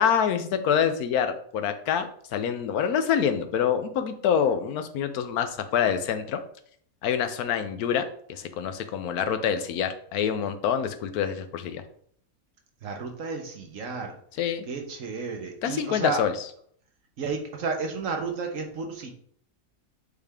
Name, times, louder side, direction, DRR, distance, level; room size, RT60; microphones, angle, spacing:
voice 1, 0.0-6.4 7.0-11.8 14.4-14.7 15.6-16.3, left 8 dB, 90° left, 8 dB, 1.2 m, -26 dB
voice 2, 12.8-14.1 14.7-16.2 17.2-19.1, right 4 dB, 65° right, 3 dB, 1.3 m, -32 dB
8.2 x 3.4 x 3.5 m, 0.62 s
omnidirectional pair, 1.5 m